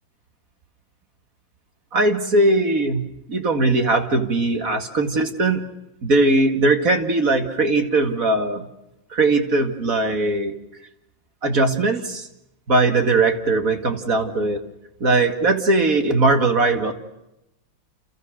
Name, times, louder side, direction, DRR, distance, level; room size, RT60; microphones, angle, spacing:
voice 1, 1.9-5.6 6.0-8.7 9.1-10.5 11.4-12.3 12.7-14.6 15.0-16.9, right 2 dB, 45° right, 6 dB, 2.6 m, -20 dB
30.0 x 29.5 x 6.5 m, 0.91 s
omnidirectional pair, 2.0 m